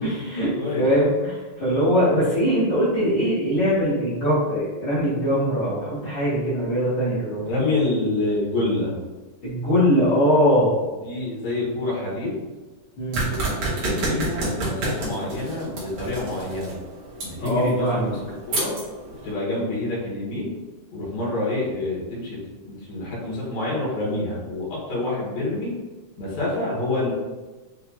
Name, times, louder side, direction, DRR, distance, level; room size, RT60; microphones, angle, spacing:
voice 1, 0.0-0.5 0.8-7.4 9.4-10.7 13.0-13.2 17.4-18.2, equal, 55° left, -13 dB, 1.4 m, -21 dB
voice 2, 0.6-0.9 7.4-9.0 11.0-12.5 13.1-16.8 17.2-18.2 18.5-18.7 19.2-20.6 20.9-22.4 22.6-25.7 26.2-27.1, left 2 dB, 80° left, -6 dB, 3.3 m, -27 dB
sound 1, 13.1-19.3, right 2 dB, 55° right, 1.9 m, -30 dB
7.5 x 2.8 x 2.3 m, 1.3 s
omnidirectional pair, 4.0 m